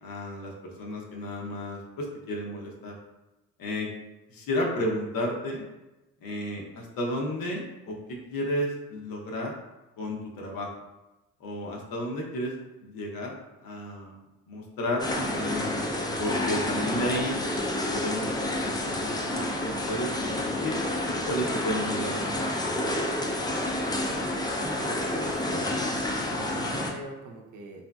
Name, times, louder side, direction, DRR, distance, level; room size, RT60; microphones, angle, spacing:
voice 1, 0.0-2.9 3.6-3.9 4.3-5.6 6.2-9.6 10.0-10.7 11.4-12.5 12.8-15.8 16.2-17.4 17.9-20.8 21.1-22.4, left 1 dB, 75° left, -1 dB, 0.8 m, -32 dB
sound 1, 15.0-26.9, left 1 dB, 10° left, 0.4 m, -29 dB
voice 2, 24.0-25.7 26.2-27.8, right 2 dB, 60° right, 1 dB, 0.6 m, -42 dB
3.0 x 2.6 x 2.2 m, 1.0 s
cardioid pair, 90°, 35 cm